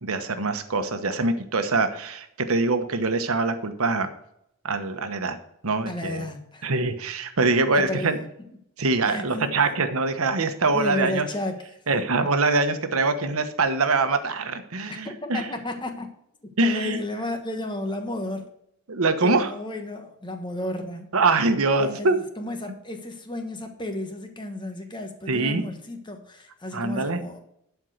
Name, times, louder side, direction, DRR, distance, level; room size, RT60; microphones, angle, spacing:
voice 1, 0.0-4.1 4.6-5.4 5.6-6.3 6.6-8.2 8.8-11.2 11.9-15.5 16.6-17.0 18.9-19.5 21.1-22.2 25.3-25.6 26.7-27.2, right 3 dB, 80° right, 1.1 m, -24 dB
voice 2, 5.9-6.7 7.8-8.3 9.0-9.7 10.7-11.8 14.9-16.1 16.6-18.4 19.2-21.1 21.8-27.4, left 1 dB, 20° left, 1.3 m, -33 dB
12.0 x 4.6 x 6.6 m
head